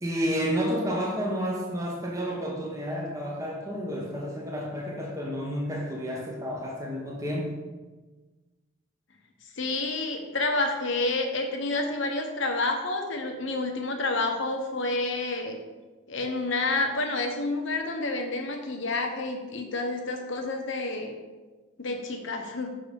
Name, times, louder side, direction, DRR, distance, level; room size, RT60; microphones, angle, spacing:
voice 1, 0.0-7.6, equal, 15° right, -2 dB, 0.8 m, -30 dB
voice 2, 9.6-15.6 16.1-21.1 21.8-22.7, left 2 dB, 65° left, 4 dB, 0.9 m, -29 dB
6.1 x 3.8 x 5.2 m, 1.3 s
head